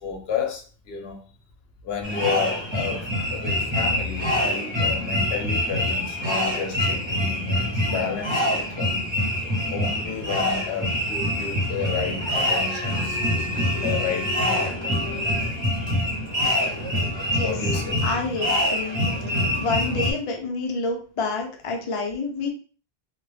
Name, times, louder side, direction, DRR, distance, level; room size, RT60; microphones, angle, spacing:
voice 1, 0.0-1.2 1.8-9.0 9.7-14.7 17.4-18.0, left 6 dB, 75° left, 0.8 m, -31 dB
sound 1, 2.0-20.1, left 1 dB, 30° right, 0.7 m, -25 dB
voice 2, 17.2-17.5 18.0-19.0 19.6-22.5, left 3 dB, 45° left, 0.4 m, -28 dB
2.2 x 2.0 x 3.2 m
omnidirectional pair, 1.1 m